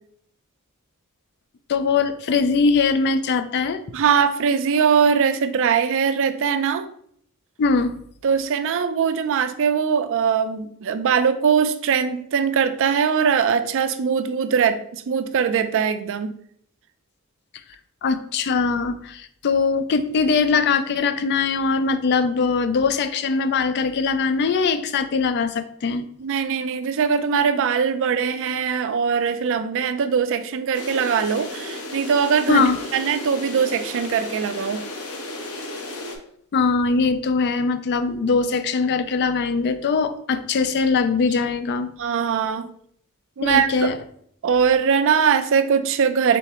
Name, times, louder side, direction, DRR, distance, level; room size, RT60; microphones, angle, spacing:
voice 1, 1.7-3.8 7.6-8.0 18.0-26.1 32.5-32.8 36.5-41.9 43.4-44.0, left 4 dB, 50° left, 11 dB, 0.3 m, -21 dB
voice 2, 3.9-6.9 8.2-16.3 26.2-34.8 42.0-42.7 43.4-43.9 44.4-46.4, right 6 dB, 60° right, 10 dB, 0.4 m, -21 dB
sound 1, 30.7-36.2, left 2 dB, 85° left, 0.8 m, -34 dB
4.0 x 3.5 x 2.9 m, 0.66 s
head